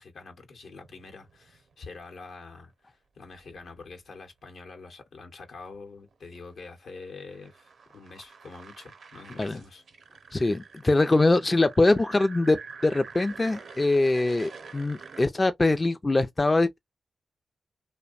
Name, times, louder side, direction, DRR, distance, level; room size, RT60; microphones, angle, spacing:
voice 1, 0.0-9.8, left 4 dB, 75° left, 0.8 m, -46 dB
sound 1, 0.7-1.7 3.3-3.9 5.7-15.3, right 5 dB, 75° right, 0.6 m, -47 dB
voice 2, 10.3-16.8, left 2 dB, 35° left, 0.4 m, -23 dB
2.6 x 2.1 x 2.4 m
supercardioid pair, 40°, 0 cm